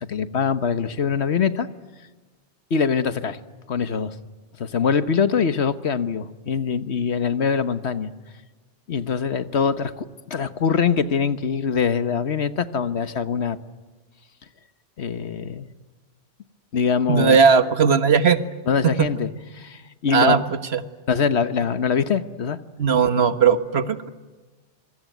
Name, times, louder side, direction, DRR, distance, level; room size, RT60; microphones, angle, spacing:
voice 1, 0.0-1.7 2.7-3.4 3.7-4.2 4.6-8.1 8.9-13.6 15.0-15.7 16.7-17.4 18.7-20.4 21.1-22.6, left 6 dB, 75° left, 12 dB, 1.5 m, -23 dB
voice 2, 17.1-18.4 18.8-19.1 20.1-20.4 20.7-20.8 22.8-24.1, right 6 dB, 65° right, 11 dB, 1.6 m, -17 dB
26.5 x 24.0 x 9.3 m, 1.3 s
omnidirectional pair, 1.1 m